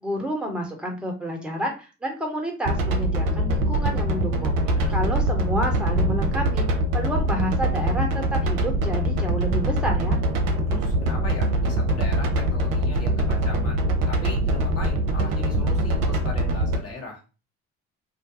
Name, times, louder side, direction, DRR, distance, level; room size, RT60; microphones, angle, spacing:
voice 1, 0.0-6.7 6.9-10.2, equal, ahead, 0 dB, 1.0 m, -29 dB
sound 1, 2.6-16.8, right 1 dB, 60° right, 0.7 m, -23 dB
voice 2, 4.8-5.1 10.7-17.2, left 3 dB, 40° left, 0 dB, 1.3 m, -38 dB
2.5 x 2.2 x 2.7 m, 0.32 s
hypercardioid pair, 50°, 38 cm